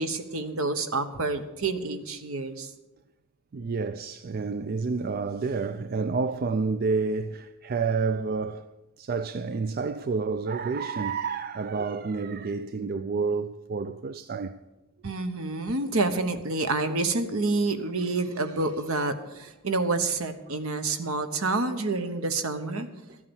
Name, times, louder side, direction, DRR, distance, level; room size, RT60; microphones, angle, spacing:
voice 1, 0.0-2.7 15.0-22.9, right 3 dB, 65° right, 1.1 m, -28 dB
voice 2, 3.5-8.7 9.0-14.6, right 4 dB, 45° right, 0.4 m, -29 dB
13.5 x 8.6 x 7.1 m
head